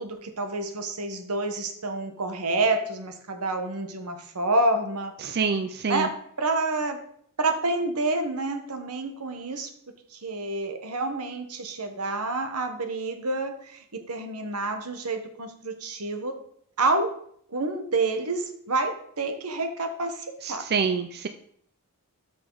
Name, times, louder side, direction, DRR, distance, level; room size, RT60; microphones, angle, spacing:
voice 1, 0.0-5.1 5.9-7.0 7.4-9.7 10.1-16.3 16.8-17.1 17.5-20.7, right 2 dB, 80° right, 7 dB, 1.3 m, -28 dB
voice 2, 5.2-6.1 20.4-21.3, right 5 dB, 45° right, 9 dB, 0.5 m, -26 dB
12.5 x 5.8 x 3.9 m, 0.65 s
head